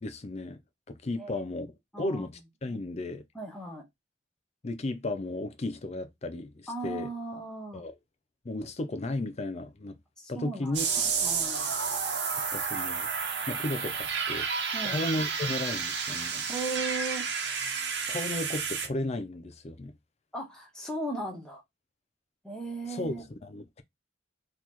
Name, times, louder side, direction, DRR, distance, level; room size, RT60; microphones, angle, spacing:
voice 1, 0.0-0.6 0.9-3.2 4.6-7.1 7.7-8.0 8.4-10.0 10.3-10.9 12.5-13.1 13.5-14.5 14.8-16.4 18.1-19.9 22.9-23.8, left 2 dB, 35° left, 0.5 m, -34 dB
voice 2, 1.9-2.3 3.3-3.8 6.7-7.8 10.2-11.7 14.7-15.0 16.5-17.2 20.3-21.6 22.4-23.2, right 2 dB, 5° left, 1.0 m, -37 dB
sound 1, 10.7-18.9, right 6 dB, 65° right, 1.1 m, -31 dB
4.0 x 3.1 x 4.1 m
head